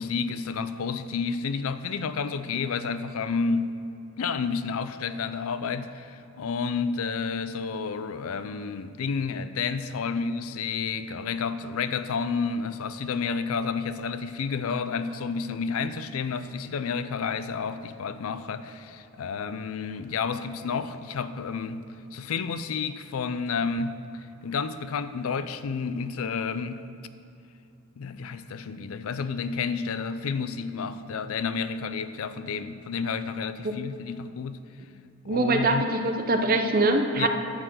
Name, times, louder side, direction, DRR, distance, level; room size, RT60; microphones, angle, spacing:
voice 1, 0.0-3.8 4.2-21.9 22.1-24.0 24.4-26.8 28.0-34.6 35.2-35.8 37.2-37.3, left 5 dB, 70° left, 12 dB, 0.4 m, -30 dB
voice 2, 35.3-37.3, right 2 dB, 40° right, 6 dB, 0.6 m, -23 dB
10.5 x 4.5 x 7.5 m, 2.8 s
head